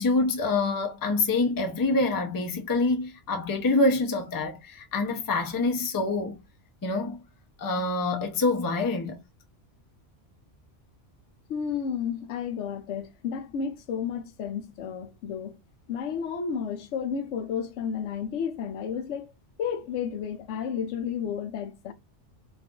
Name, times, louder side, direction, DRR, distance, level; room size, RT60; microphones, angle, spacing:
voice 1, 0.0-6.4 6.8-7.2 7.6-9.2, left 3 dB, 30° left, 0.4 m, -26 dB
voice 2, 11.5-15.5 15.9-19.3 19.6-21.9, left 7 dB, 80° left, 0.9 m, -32 dB
2.5 x 2.4 x 3.6 m
omnidirectional pair, 1.2 m